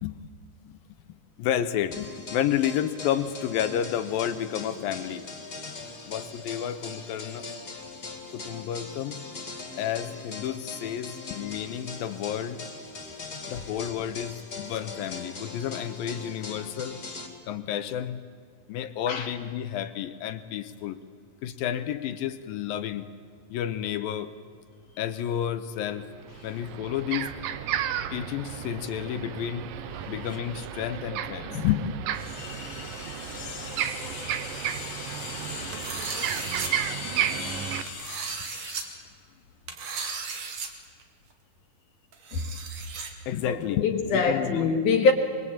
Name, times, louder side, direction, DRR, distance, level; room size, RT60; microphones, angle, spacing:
voice 1, 1.4-5.2 6.1-7.5 8.3-9.3 9.8-12.6 13.5-17.0 17.5-18.3 18.7-21.0 21.4-23.1 23.5-24.3 25.0-26.1 26.4-27.3 28.1-29.6 30.1-32.0 43.3-44.7, left 10 dB, 80° left, 2.6 m, -30 dB
sound 1, 1.9-17.3, left 3 dB, 30° left, 3.0 m, -40 dB
sound 2, 25.8-25.9 26.2-37.8, right 10 dB, 70° right, 2.6 m, -33 dB
voice 2, 32.3-38.9 42.3-42.4 43.5-45.1, left 4 dB, 60° left, 2.8 m, -30 dB
sound 3, 35.7-36.7 37.9-38.8 39.7-40.7 41.0-41.1 42.1-43.1, right 5 dB, 50° right, 3.2 m, -35 dB
25.0 x 23.5 x 8.7 m
omnidirectional pair, 4.3 m